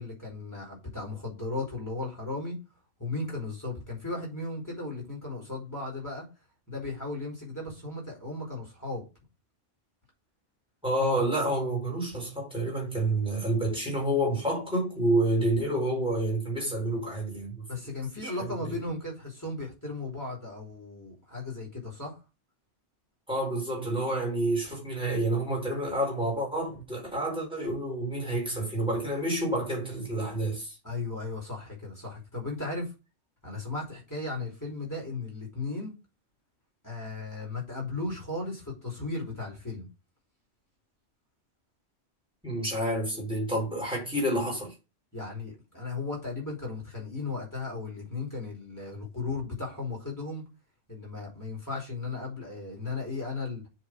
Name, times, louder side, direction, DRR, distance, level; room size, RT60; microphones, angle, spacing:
voice 1, 0.0-2.6 3.0-6.3 6.7-9.0 17.7-22.2 30.8-32.9 33.4-35.9 36.8-39.9 45.1-50.4 50.9-53.6, left 3 dB, 15° left, 4.8 m, -36 dB
voice 2, 10.8-17.6 18.2-18.8 23.3-30.8 42.4-44.7, right 1 dB, 5° right, 4.8 m, -29 dB
7.6 x 4.9 x 6.2 m
omnidirectional pair, 1.2 m